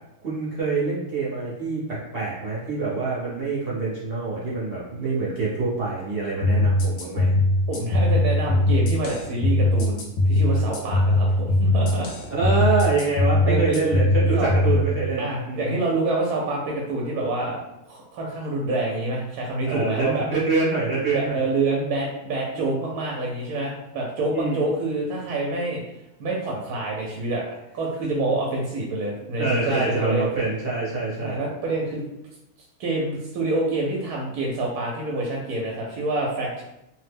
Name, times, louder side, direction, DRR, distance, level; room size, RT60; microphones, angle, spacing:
voice 1, 0.2-7.3 12.3-15.8 19.7-21.4 22.5-22.8 24.3-24.6 29.4-31.4, right 4 dB, 45° right, -7 dB, 0.9 m, -25 dB
sound 1, 6.4-14.8, left 2 dB, 85° left, 0.5 m, -21 dB
voice 2, 7.7-12.1 13.4-13.8 14.3-14.5 15.2-17.6 17.9-20.3 21.1-25.8 26.2-27.5 27.7-30.3 31.2-32.0 32.8-36.6, right 2 dB, 80° right, -2 dB, 1.1 m, -27 dB
2.9 x 2.0 x 3.3 m, 0.89 s
omnidirectional pair, 1.6 m